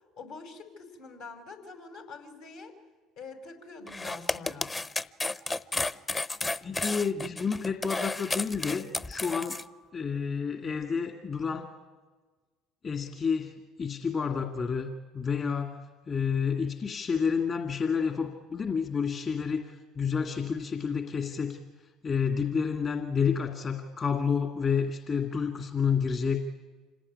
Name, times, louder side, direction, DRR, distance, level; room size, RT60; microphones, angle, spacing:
voice 1, 0.2-2.7 3.2-4.7, left 4 dB, 75° left, 4 dB, 5.0 m, -45 dB
sound 1, 3.9-9.6, left 2 dB, 25° left, 0.8 m, -32 dB
voice 2, 6.6-9.6 9.9-11.7 12.8-14.9 15.1-15.8 16.1-21.6 22.0-26.4, left 6 dB, 40° left, 4 dB, 2.3 m, -29 dB
26.5 x 18.0 x 9.8 m, 1.3 s
hypercardioid pair, 65°, 0 cm